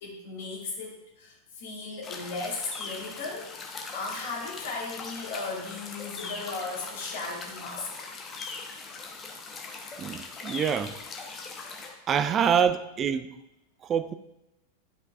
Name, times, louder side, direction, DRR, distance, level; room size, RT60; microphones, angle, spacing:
voice 1, 0.0-8.1 12.2-12.3, left 3 dB, 55° left, 2.2 m, -36 dB
sound 1, 2.0-11.9, left 4 dB, 25° left, 1.0 m, -40 dB
voice 2, 10.0-11.0 12.1-13.4 13.8-14.1, right 7 dB, 25° right, 0.4 m, -26 dB
11.0 x 5.2 x 2.4 m
figure-of-eight pair, 90°, 0 cm